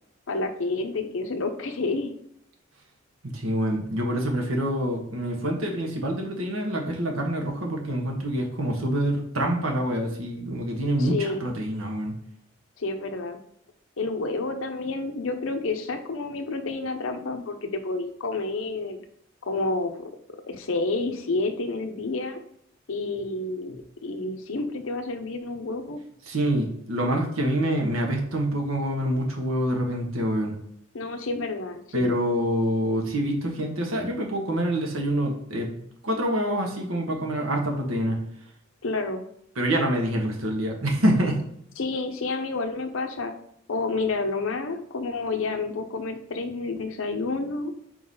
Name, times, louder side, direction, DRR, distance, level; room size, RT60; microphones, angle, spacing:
voice 1, 0.3-2.2 11.0-11.5 12.8-13.4 14.0-19.0 19.4-20.1 20.5-22.4 22.9-23.8 24.0-26.0 30.9-32.2 38.8-39.2 41.8-43.3 43.7-47.7, left 3 dB, 75° left, 6 dB, 0.7 m, -29 dB
voice 2, 3.2-12.1 26.3-30.5 31.9-35.7 36.0-38.2 39.5-41.4, right 1 dB, 85° right, 1 dB, 1.4 m, -26 dB
4.6 x 3.9 x 5.4 m, 0.72 s
head